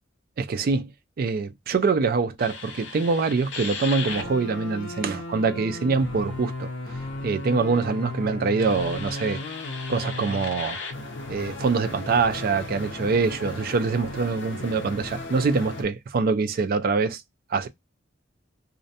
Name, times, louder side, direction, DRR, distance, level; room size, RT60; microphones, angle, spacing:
voice 1, 0.4-0.9 1.2-6.7 7.2-9.4 9.9-10.8 11.3-17.2 17.5-17.7, right 4 dB, 45° right, 0.3 m, -24 dB
sound 1, 2.4-15.8, left 2 dB, 60° left, 0.5 m, -35 dB
2.5 x 2.0 x 2.6 m
head